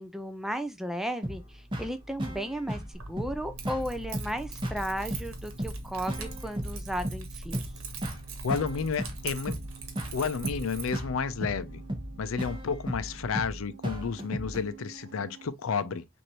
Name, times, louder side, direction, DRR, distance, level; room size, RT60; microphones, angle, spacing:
voice 1, 0.0-2.8 3.1-7.6, equal, ahead, 0.3 m, -35 dB
sound 1, 1.2-14.6, equal, 20° right, 1.0 m, -36 dB
sound 2, 2.8-15.5, right 4 dB, 55° right, 0.7 m, -51 dB
Keys jangling, 2.9-10.9, right 4 dB, 75° right, 1.2 m, -42 dB
voice 2, 8.4-9.6 10.1-11.8 12.2-16.0, left 5 dB, 75° left, 0.5 m, -31 dB
6.2 x 2.6 x 2.9 m
head